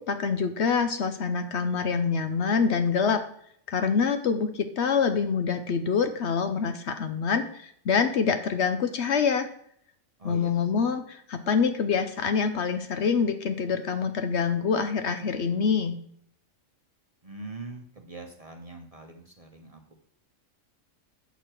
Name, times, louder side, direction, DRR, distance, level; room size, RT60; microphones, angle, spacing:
voice 1, 0.1-3.2 3.7-9.5 10.2-15.9, left 5 dB, 60° left, 8 dB, 0.9 m, -26 dB
voice 2, 10.2-10.5 17.2-19.9, right 2 dB, 30° right, 3 dB, 0.8 m, -42 dB
8.1 x 6.5 x 4.4 m, 0.67 s
omnidirectional pair, 1.4 m